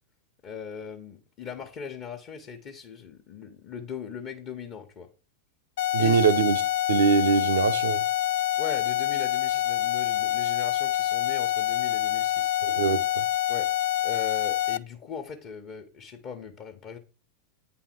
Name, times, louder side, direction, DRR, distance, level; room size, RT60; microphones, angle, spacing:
voice 1, 0.4-5.1 6.0-6.2 8.6-12.5 13.5-13.7 14.0-17.0, left 7 dB, 35° left, 1.2 m, -39 dB
sound 1, 5.8-14.8, left 12 dB, 55° left, 0.4 m, -26 dB
voice 2, 5.9-6.6 6.9-8.0 12.6-13.2, right 6 dB, 65° right, 0.6 m, -23 dB
9.0 x 4.1 x 5.9 m
figure-of-eight pair, 90°, 0 cm